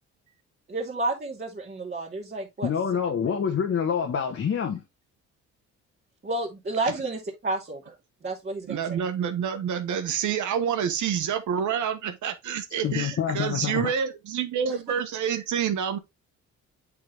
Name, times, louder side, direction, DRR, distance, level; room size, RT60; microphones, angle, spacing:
voice 1, 0.7-2.7 6.2-7.9 8.2-9.0, right 2 dB, 35° right, 2.5 m, -31 dB
voice 2, 2.6-4.8 12.8-13.9, left 7 dB, 50° left, 1.4 m, -26 dB
voice 3, 8.7-16.0, right 8 dB, 75° right, 1.4 m, -28 dB
8.4 x 3.9 x 3.5 m
cardioid pair, 90°, 30 cm